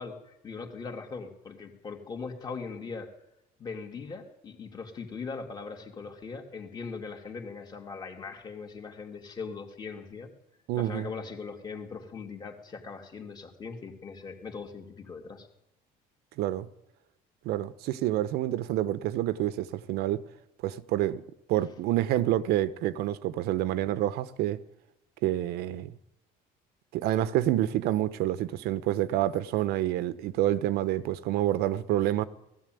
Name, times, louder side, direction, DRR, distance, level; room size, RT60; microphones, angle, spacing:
voice 1, 0.0-3.1 3.6-10.3 10.8-15.5, left 4 dB, 25° left, 2.7 m, -40 dB
voice 2, 10.7-11.1 16.4-16.7 17.4-20.2 20.6-21.2 21.5-24.6 25.2-26.0 26.9-32.3, right 13 dB, 80° right, 1.1 m, -28 dB
19.0 x 15.0 x 9.3 m
cardioid pair, 175°, 16 cm